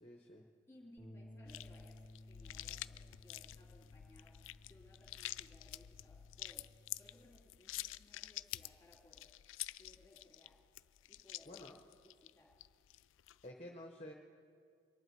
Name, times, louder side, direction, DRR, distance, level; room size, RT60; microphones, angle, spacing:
voice 1, 0.0-0.4 11.5-11.7 13.4-14.1, left 1 dB, 30° left, 2 dB, 0.8 m, -51 dB
voice 2, 0.7-4.4 4.7-6.7 7.0-10.6 11.0-11.6 11.9-12.6, left 1 dB, 15° left, -2 dB, 2.5 m, -64 dB
sound 1, 1.0-7.2, left 1 dB, 15° right, 2.4 m, -58 dB
sound 2, 1.5-13.5, left 15 dB, 90° left, 0.3 m, -49 dB
23.5 x 11.0 x 4.6 m, 2.2 s
head